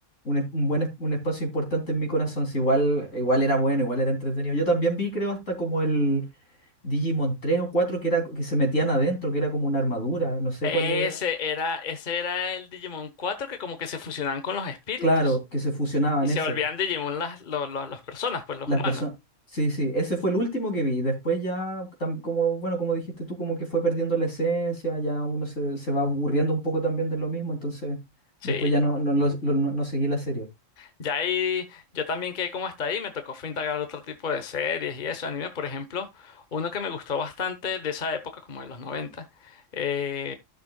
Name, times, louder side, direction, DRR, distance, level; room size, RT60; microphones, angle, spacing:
voice 1, 0.3-6.3 6.8-11.2 15.0-16.6 18.7-19.1 19.5-28.0 28.4-30.5, right 1 dB, 75° left, 3.6 m, -25 dB
voice 2, 10.6-15.3 16.2-19.0 28.4-28.7 30.8-40.3, left 6 dB, 40° left, 1.2 m, -30 dB
15.0 x 6.5 x 2.3 m
omnidirectional pair, 1.3 m